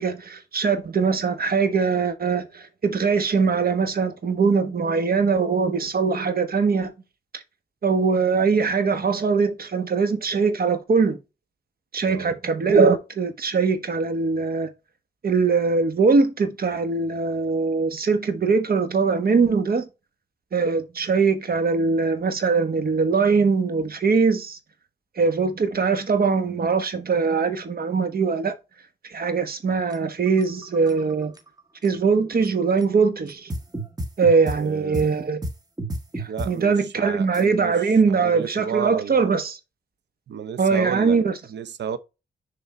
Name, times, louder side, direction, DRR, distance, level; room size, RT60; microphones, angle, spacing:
voice 1, 0.0-6.9 7.3-7.4 7.8-11.2 11.9-14.7 15.2-19.9 20.5-24.6 25.2-28.5 29.0-31.3 31.8-33.5 34.2-35.4 36.2-39.6 40.6-41.3, right 5 dB, 60° right, 1.4 m, -21 dB
voice 2, 12.0-12.3 34.6-35.1 36.3-37.7 38.1-39.3 40.3-41.2 41.5-42.0, right 8 dB, 80° right, 0.8 m, -32 dB
sound 1, 29.9-31.9 32.4-32.5 32.8-32.9 33.3-34.6 34.9-35.1 35.4-36.5 37.3-37.4, right 1 dB, 20° right, 1.7 m, -31 dB
6.7 x 3.9 x 4.3 m
cardioid pair, 60°, 18 cm